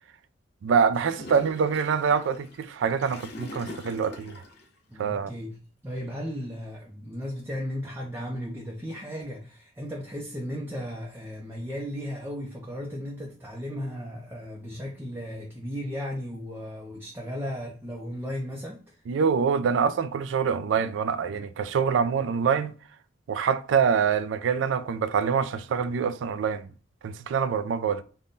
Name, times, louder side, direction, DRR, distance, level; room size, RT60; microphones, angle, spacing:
voice 1, 0.6-4.4 5.0-5.3 19.1-22.7 23.3-26.7 27.0-28.0, right 6 dB, 70° right, 0.3 m, -25 dB
Gurgling / Toilet flush, 0.9-4.7, left 1 dB, 55° left, 0.7 m, -43 dB
voice 2, 4.9-18.9, equal, 10° right, 0.5 m, -35 dB
3.6 x 2.1 x 3.8 m
head